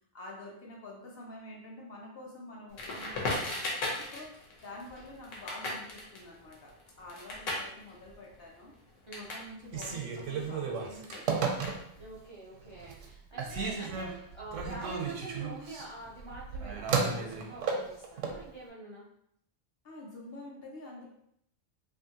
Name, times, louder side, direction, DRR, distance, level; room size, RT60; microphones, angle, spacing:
voice 1, 0.1-4.3 4.6-8.7 9.2-11.5 13.1-13.7 19.8-21.1, left 1 dB, 60° left, -2 dB, 0.8 m, -48 dB
Crackle, 2.8-9.5 9.7-12.2, left 2 dB, 85° left, 1.1 m, -38 dB
Telephone, 9.6-12.1 12.6-13.1 13.4-18.4, right 5 dB, 80° right, 0.9 m, -34 dB
voice 2, 12.0-19.0, right 3 dB, 45° right, -6 dB, 0.3 m, -45 dB
2.6 x 2.5 x 2.7 m, 0.72 s
omnidirectional pair, 1.3 m